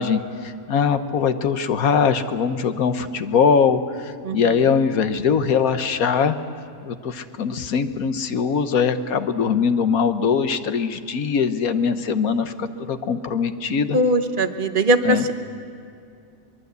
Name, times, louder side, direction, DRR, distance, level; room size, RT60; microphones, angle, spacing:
voice 1, 0.0-6.4 6.8-14.0 15.0-15.2, left 6 dB, 65° left, 9 dB, 1.4 m, -21 dB
voice 2, 13.9-15.3, right 1 dB, 35° right, 8 dB, 1.2 m, -20 dB
23.0 x 23.0 x 8.2 m, 2.5 s
omnidirectional pair, 1.7 m